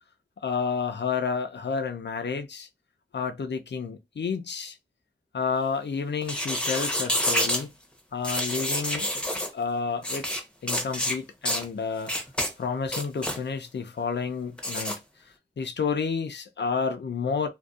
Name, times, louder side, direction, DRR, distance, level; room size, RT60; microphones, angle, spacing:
voice 1, 0.4-2.7 3.1-4.8 5.3-7.7 8.1-9.1 9.5-10.3 10.6-12.1 12.6-15.0 15.6-17.5, left 5 dB, 65° left, 0.5 m, -30 dB
sound 1, 6.2-7.6 8.2-9.5 10.0-10.4 10.7-11.2 11.5-11.6 12.1-12.5 12.9-13.4 14.6-15.0, equal, 5° left, 0.8 m, -28 dB
2.5 x 2.2 x 2.3 m
wide cardioid pair, 60°, 19 cm